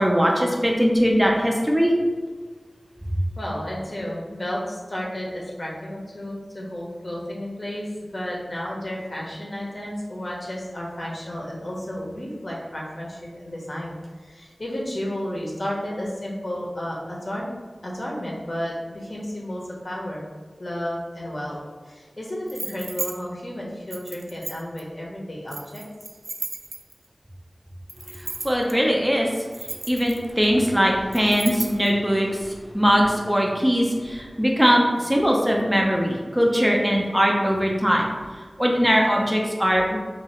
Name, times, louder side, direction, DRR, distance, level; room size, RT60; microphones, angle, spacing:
voice 1, 0.0-1.9 28.4-29.3 29.9-38.1 38.6-40.0, equal, 10° right, -1 dB, 0.7 m, -20 dB
voice 2, 3.4-17.5 17.8-20.2 20.6-25.8, left 1 dB, 45° left, -3 dB, 0.9 m, -32 dB
sound 1, 22.5-23.1 23.9-24.8 25.5-27.1 27.9-28.7 29.4-30.4 31.1-31.9, right 2 dB, 65° right, 0.4 m, -34 dB
2.9 x 2.9 x 4.3 m, 1.4 s
wide cardioid pair, 60°, 0 cm